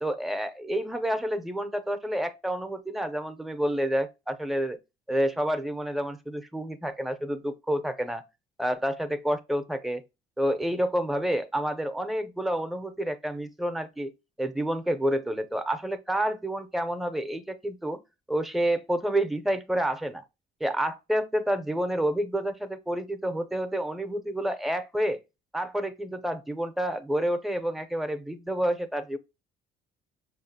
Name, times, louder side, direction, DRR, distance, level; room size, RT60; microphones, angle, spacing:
voice 1, 0.0-4.8 5.1-8.2 8.6-10.0 10.4-14.1 14.4-18.0 18.3-20.2 20.6-25.2 25.5-29.2, right 1 dB, ahead, 0.5 m, -29 dB
5.8 x 2.4 x 2.6 m
cardioid pair, 110°, 17 cm